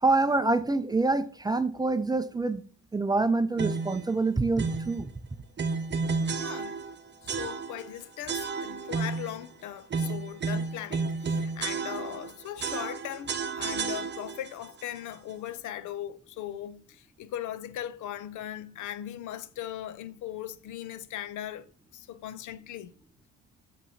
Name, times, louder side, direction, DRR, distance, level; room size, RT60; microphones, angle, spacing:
voice 1, 0.0-2.6 2.9-5.1, right 3 dB, 15° right, 0.4 m, -26 dB
sound 1, 3.6-4.0 4.6-4.9 5.6-6.9 7.3-7.9 8.3-9.3 9.9-12.3 12.6-14.5, right 4 dB, 35° right, 0.7 m, -31 dB
voice 2, 6.4-6.8 7.2-21.7 21.9-22.9, left 11 dB, 75° left, 0.6 m, -39 dB
8.0 x 3.1 x 4.2 m
cardioid pair, 90°, 30 cm